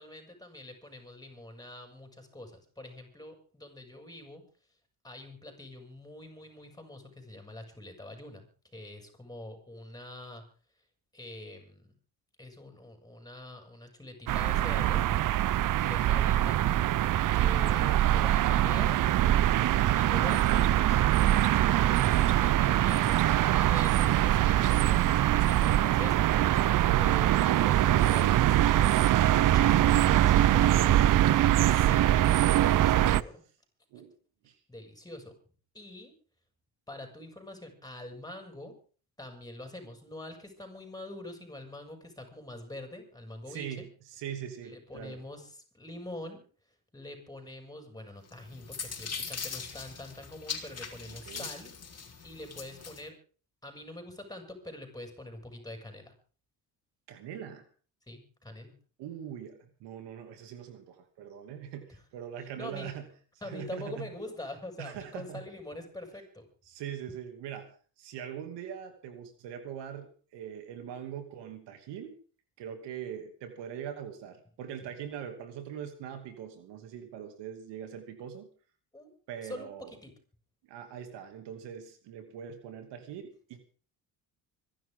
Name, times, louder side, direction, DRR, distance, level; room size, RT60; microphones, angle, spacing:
voice 1, 0.0-4.4 5.0-10.4 11.1-11.9 12.4-15.0 15.6-16.6 17.3-19.0 19.9-21.1 21.8-26.7 26.9-31.1 31.6-33.4 34.7-35.3 35.7-36.1 36.9-38.7 39.2-43.9 44.6-53.1 53.6-56.1 58.1-58.7 62.4-62.9 63.4-66.5 74.8-74.9 78.9-79.1 79.4-80.1, left 1 dB, 10° left, 4 dB, 7.2 m, -45 dB
sound 1, 14.3-33.2, right 13 dB, 50° right, 0.7 m, -23 dB
voice 2, 43.5-43.8 44.1-45.2 51.1-51.5 57.1-57.7 59.0-63.0 63.4-64.1 64.8-65.4 66.7-67.7 68.0-72.2 72.6-78.5 79.3-79.9 80.7-83.7, right 9 dB, 80° right, 7 dB, 2.8 m, -42 dB
sound 2, 48.3-53.0, left 6 dB, 35° left, 4.0 m, -40 dB
25.5 x 11.5 x 3.8 m, 0.40 s
supercardioid pair, 80°, 41 cm